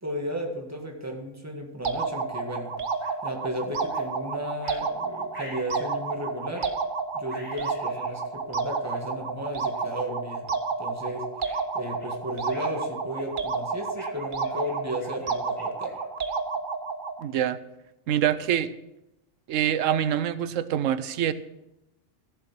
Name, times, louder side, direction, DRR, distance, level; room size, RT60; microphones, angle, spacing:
voice 1, 0.0-2.7 3.2-6.7 7.1-10.5 10.8-11.3 11.7-16.0, equal, 15° right, 2 dB, 1.8 m, -34 dB
sound 1, 1.8-17.2, right 4 dB, 45° right, 0.9 m, -31 dB
sound 2, 3.0-3.2 3.9-4.1 4.6-4.8 5.3-5.9 6.5-6.8 7.3-8.2 8.9-9.0 9.7-9.9 10.4-10.5 11.1-12.1 12.5-12.8 13.2-13.5 14.0-16.5, left 1 dB, 30° left, 5.7 m, -48 dB
voice 2, 17.2-17.6 18.1-18.7 19.5-21.3, right 10 dB, 90° right, 14 dB, 1.0 m, -25 dB
14.0 x 7.4 x 6.1 m, 0.91 s
omnidirectional pair, 1.3 m